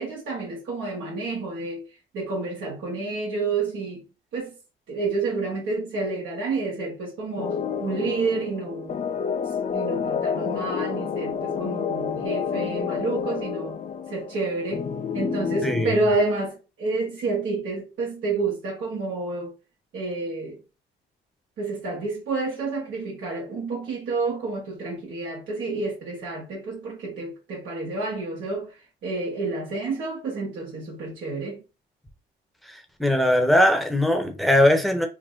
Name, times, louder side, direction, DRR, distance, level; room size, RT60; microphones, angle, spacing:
voice 1, 0.0-1.8 2.1-4.0 4.3-4.5 4.9-9.0 9.7-13.8 14.1-14.9 15.1-19.5 19.9-20.6 21.6-28.7 29.0-31.6, right 3 dB, 75° right, 1.5 m, -29 dB
sound 1, 7.4-15.9, left 6 dB, 40° left, 0.5 m, -29 dB
voice 2, 15.6-16.0 33.0-35.1, left 1 dB, ahead, 1.0 m, -20 dB
3.6 x 2.1 x 3.8 m
cardioid pair, 90°, 20 cm